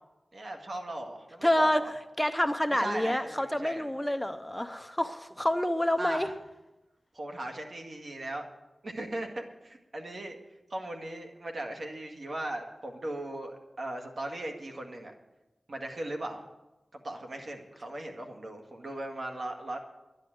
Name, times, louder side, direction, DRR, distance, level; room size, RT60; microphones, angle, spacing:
voice 1, 0.3-1.9 2.7-3.9 6.0-6.3 7.1-8.5 8.8-10.4 10.7-15.1 15.7-16.4 16.9-19.8, right 1 dB, 60° right, 3 dB, 2.0 m, -38 dB
voice 2, 1.4-1.8 2.2-6.3, left 1 dB, 5° left, 9 dB, 0.7 m, -28 dB
11.0 x 10.5 x 7.8 m, 1.0 s
wide cardioid pair, 70°, 0 cm